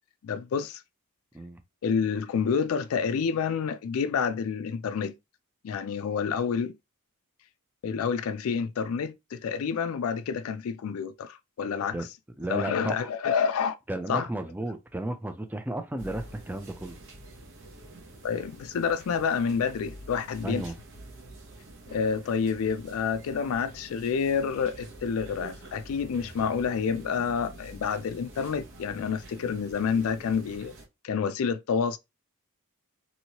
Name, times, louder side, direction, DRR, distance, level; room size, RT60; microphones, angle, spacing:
voice 1, 0.2-0.8 1.8-5.2 5.6-6.7 7.8-12.0 12.5-13.7 14.1-14.3 18.2-20.6 21.9-30.7 31.0-32.0, left 6 dB, 65° left, 0.3 m, -28 dB
voice 2, 12.4-13.1 13.9-17.0 20.4-20.8, right 1 dB, 10° right, 0.3 m, -33 dB
sound 1, 16.0-30.9, right 1 dB, 60° right, 0.9 m, -47 dB
2.9 x 2.7 x 2.8 m
head